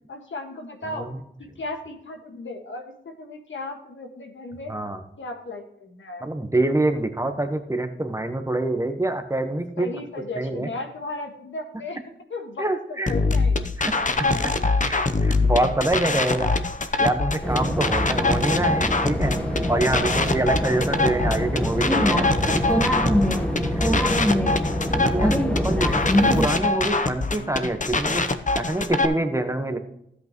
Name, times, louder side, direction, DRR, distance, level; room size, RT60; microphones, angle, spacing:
voice 1, 0.1-1.1 1.4-4.7 5.2-6.3 9.8-12.0 12.3-13.7 14.2-14.5 20.0-20.3 25.0-26.3 27.3-27.5 27.8-27.9, left 2 dB, 75° left, 4 dB, 1.7 m, -36 dB
voice 2, 4.7-5.0 6.2-10.0 10.4-10.7 12.6-13.1 13.8-13.9 14.4-14.5 14.8-16.5 17.0-19.4 19.7-22.6 23.7-24.1 24.9-25.3 25.6-26.0 26.3-28.3 28.5-29.8, right 1 dB, 15° right, 7 dB, 1.2 m, -25 dB
sound 1, 13.1-29.1, left 3 dB, 40° left, 0.8 m, -24 dB
sound 2, 17.4-26.5, equal, 5° left, 1.3 m, -24 dB
13.0 x 8.4 x 3.1 m, 0.78 s
wide cardioid pair, 70°, 20 cm